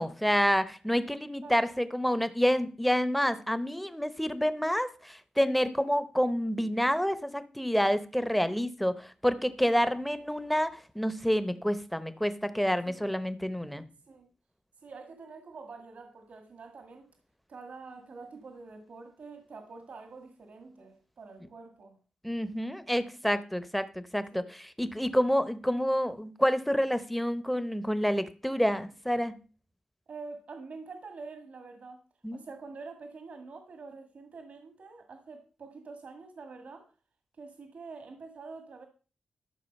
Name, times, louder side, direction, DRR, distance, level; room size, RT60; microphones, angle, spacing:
voice 1, 0.0-13.8 22.2-29.3 32.2-32.4, equal, ahead, 0.9 m, -28 dB
voice 2, 14.8-17.1 17.5-22.0 24.3-24.5 30.1-32.0 32.3-36.9 37.4-38.9, right 4 dB, 65° right, 1.7 m, -46 dB
13.0 x 6.5 x 5.4 m
wide cardioid pair, 120°, 3 cm